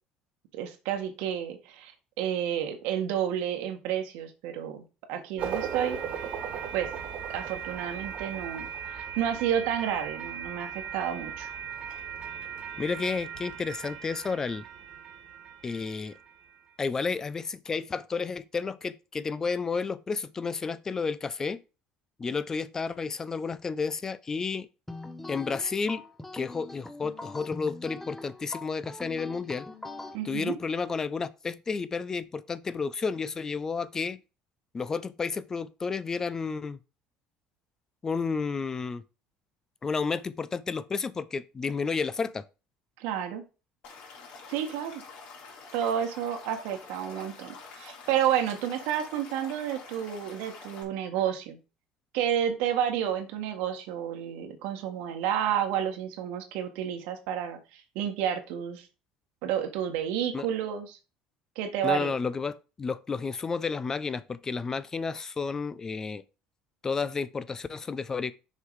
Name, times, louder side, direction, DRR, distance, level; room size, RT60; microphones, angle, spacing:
voice 1, 0.5-1.9 2.2-6.0 6.7-6.9 7.3-11.5 30.1-30.5 43.0-43.4 44.5-44.9 45.7-51.6 52.1-58.9 59.4-61.0 61.5-62.1, right 9 dB, 85° right, 1.7 m, -30 dB
sound 1, 5.4-16.5, right 8 dB, 55° right, 1.7 m, -38 dB
voice 2, 12.8-14.6 15.6-16.2 16.8-21.6 22.2-24.7 25.3-26.0 26.3-29.7 30.2-34.2 34.7-36.8 38.0-39.0 39.8-42.4 60.3-60.5 61.8-66.2 66.8-68.3, left 5 dB, 25° left, 0.5 m, -31 dB
sound 2, 24.9-30.2, left 2 dB, 5° left, 0.9 m, -42 dB
Stream / Liquid, 43.8-50.8, left 4 dB, 65° left, 3.2 m, -47 dB
6.6 x 4.8 x 4.8 m
cardioid pair, 125°, 2 cm